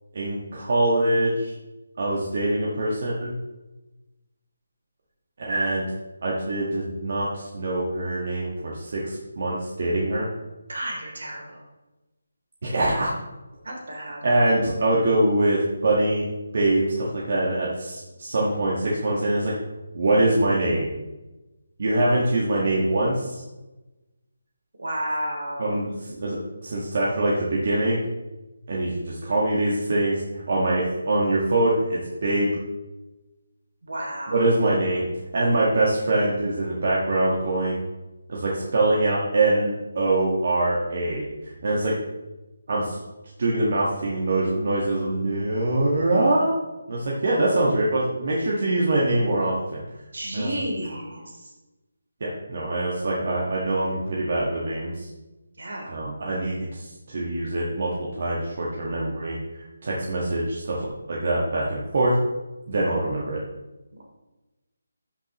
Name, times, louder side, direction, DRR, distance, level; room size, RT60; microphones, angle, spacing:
voice 1, 0.1-1.5 2.0-3.3 5.5-5.8 6.2-10.3 12.6-13.1 14.2-16.3 16.5-19.5 19.9-20.9 21.8-23.4 25.6-28.0 28.7-30.2 30.5-32.5 34.3-35.1 35.3-37.8 38.3-41.2 41.6-41.9 42.7-43.0 43.4-46.5 46.9-49.8 50.3-50.5 50.9-51.0 52.2-55.1 55.9-57.9 58.2-60.8 61.1-62.1 62.7-63.4, right 2 dB, 45° right, -5 dB, 1.7 m, -24 dB
voice 2, 10.7-11.6 13.6-14.2 24.8-25.8 33.8-34.5 50.1-51.2 55.6-55.9, right 1 dB, 70° right, -1 dB, 3.3 m, -31 dB
12.5 x 6.0 x 3.2 m, 1.1 s
hypercardioid pair, 170°, 0 cm